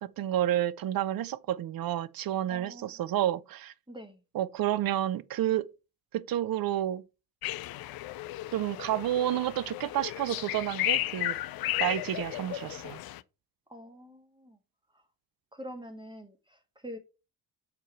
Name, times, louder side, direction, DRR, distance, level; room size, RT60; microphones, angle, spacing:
voice 1, 0.0-3.7 4.3-5.7 6.1-7.0 8.5-11.3 11.8-13.0, right 12 dB, 45° right, 0.7 m, -30 dB
voice 2, 2.5-3.0 3.9-4.2 13.7-14.6 14.9-15.0 15.5-17.0, equal, 10° right, 1.7 m, -45 dB
sound 1, 7.4-13.2, left 15 dB, 50° left, 0.6 m, -34 dB
6.8 x 4.6 x 4.4 m
hypercardioid pair, 50°, 49 cm